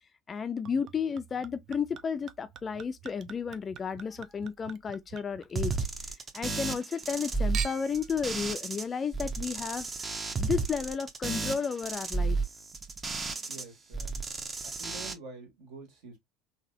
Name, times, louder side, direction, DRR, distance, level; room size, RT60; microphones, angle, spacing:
voice 1, 0.3-5.7 6.3-12.4, left 6 dB, 30° left, 0.4 m, -33 dB
Chink clink / Liquid, 0.7-6.2 6.5-7.2 7.5-8.1 8.8-8.9, right 9 dB, 45° right, 0.4 m, -45 dB
sound 1, 5.5-8.8 9.1-13.6 13.9-15.1, right 4 dB, 25° right, 0.8 m, -33 dB
voice 2, 13.5-14.1 14.6-16.2, right 3 dB, 60° right, 1.9 m, -47 dB
3.9 x 2.8 x 2.6 m
figure-of-eight pair, 65°, 0 cm